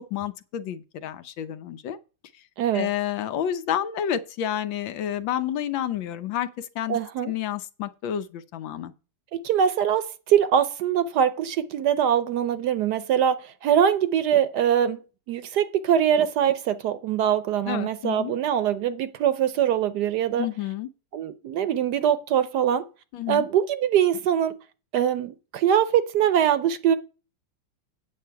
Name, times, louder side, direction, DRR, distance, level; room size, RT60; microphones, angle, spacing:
voice 1, 0.1-2.0 2.3-2.4 2.7-7.0 7.2-8.9 17.6-18.3 20.4-20.9 23.1-23.5, left 10 dB, 80° left, 1.5 m, -30 dB
voice 2, 2.6-2.9 6.9-7.3 9.3-15.0 15.3-20.5 21.1-22.9 23.3-24.5 24.9-27.0, right 9 dB, 70° right, 1.1 m, -23 dB
8.6 x 7.5 x 4.6 m
omnidirectional pair, 2.1 m